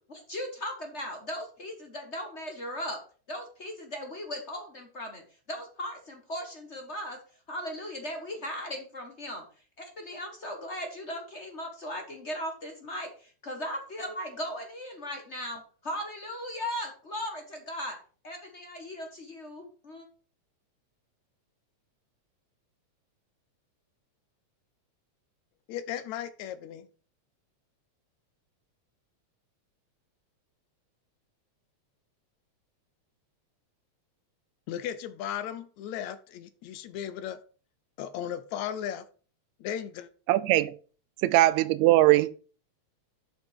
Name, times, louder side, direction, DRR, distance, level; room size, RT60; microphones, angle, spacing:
voice 1, 0.1-3.0 3.3-7.2 7.5-9.4 9.8-18.0 18.2-20.1, equal, 35° left, 1.1 m, -37 dB
voice 2, 25.7-26.9 34.7-37.4 38.0-39.1 39.6-40.1, left 10 dB, 80° left, 2.0 m, -36 dB
voice 3, 40.3-40.7 41.2-42.3, right 16 dB, 80° right, 1.9 m, -21 dB
7.5 x 5.8 x 5.5 m
omnidirectional pair, 3.3 m